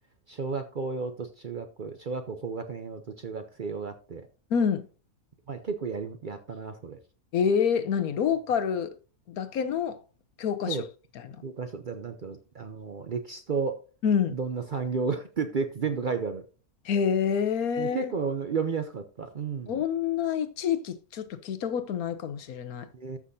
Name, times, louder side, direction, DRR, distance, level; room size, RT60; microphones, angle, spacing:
voice 1, 0.3-4.3 5.5-7.0 10.7-10.9 11.4-13.8 14.3-16.4 17.8-19.8 22.9-23.2, right 5 dB, 50° right, 0.6 m, -32 dB
voice 2, 4.5-4.9 7.3-8.9 9.3-10.0 10.4-10.8 11.2-11.4 14.0-14.4 16.8-18.1 19.7-22.9, left 7 dB, 80° left, 1.3 m, -27 dB
14.0 x 6.0 x 2.7 m
omnidirectional pair, 1.5 m